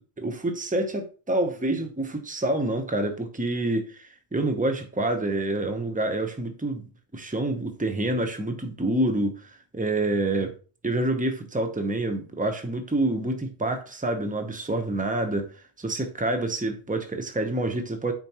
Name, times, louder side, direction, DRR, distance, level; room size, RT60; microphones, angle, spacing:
voice 1, 0.2-10.5 10.8-15.5 15.8-18.1, right 1 dB, 10° right, 0.7 m, -27 dB
9.0 x 4.4 x 3.0 m
omnidirectional pair, 1.1 m